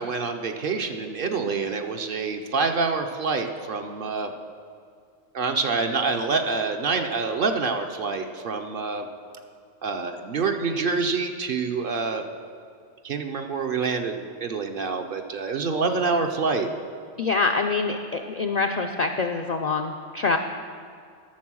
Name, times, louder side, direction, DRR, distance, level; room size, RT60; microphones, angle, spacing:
voice 1, 0.0-4.3 5.3-9.1 9.8-12.2 13.0-16.7, right 4 dB, 55° right, 5 dB, 0.8 m, -26 dB
voice 2, 17.2-20.4, left 4 dB, 60° left, 4 dB, 0.4 m, -25 dB
11.5 x 6.8 x 6.2 m, 2.3 s
omnidirectional pair, 1.2 m